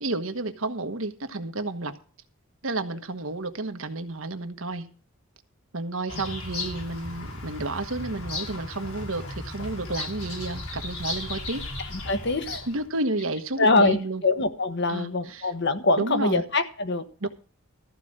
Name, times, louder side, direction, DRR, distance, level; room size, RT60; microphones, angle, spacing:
voice 1, 0.0-1.9 2.6-4.9 5.7-11.6 12.7-14.2 14.9-15.5 16.0-16.4 17.2-17.3, right 2 dB, 70° right, 8 dB, 1.3 m, -31 dB
Bird vocalization bird call bird song, 6.1-12.9, left 2 dB, 90° left, 5.9 m, -36 dB
voice 2, 12.1-12.6 13.6-17.3, left 3 dB, 55° left, 9 dB, 1.4 m, -24 dB
14.0 x 5.0 x 8.8 m, 0.39 s
head